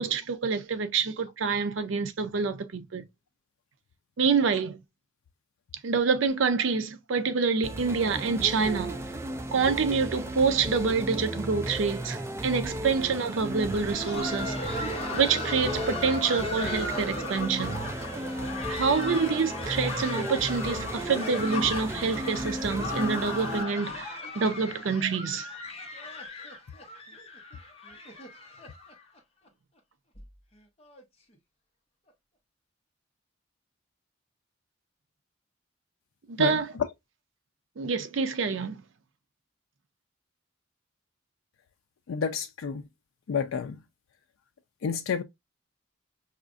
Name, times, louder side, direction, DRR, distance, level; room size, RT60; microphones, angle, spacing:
voice 1, 0.0-3.1 4.2-4.8 5.8-8.9 9.5-17.9 18.7-25.5 36.3-36.7 37.8-38.8, right 5 dB, 75° right, 0.5 m, -27 dB
sound 1, 7.6-23.6, right 1 dB, 15° right, 0.3 m, -35 dB
Laughter, 13.6-29.2 29.5-29.6 30.1-30.3 30.8-31.0 32.1-32.2, left 2 dB, 30° left, 0.8 m, -37 dB
voice 2, 36.4-36.9 42.1-42.8 43.3-43.8 44.8-45.2, left 6 dB, 80° left, 0.4 m, -30 dB
4.9 x 2.4 x 2.4 m
head